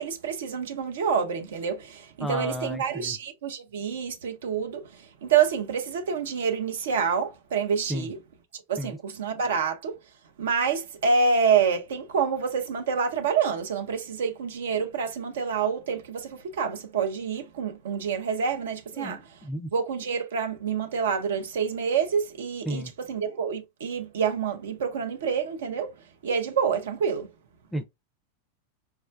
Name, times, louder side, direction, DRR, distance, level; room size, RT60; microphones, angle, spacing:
voice 1, 0.0-8.2 8.5-10.0 10.4-19.4 19.7-25.9 26.2-27.3, right 6 dB, 60° right, 0.7 m, -27 dB
voice 2, 2.2-3.1 7.9-8.1 8.8-9.0 19.0-19.2 19.5-19.7 22.7-22.9 27.7-27.8, equal, 10° left, 0.5 m, -32 dB
4.6 x 2.2 x 2.4 m
figure-of-eight pair, 90°, 0 cm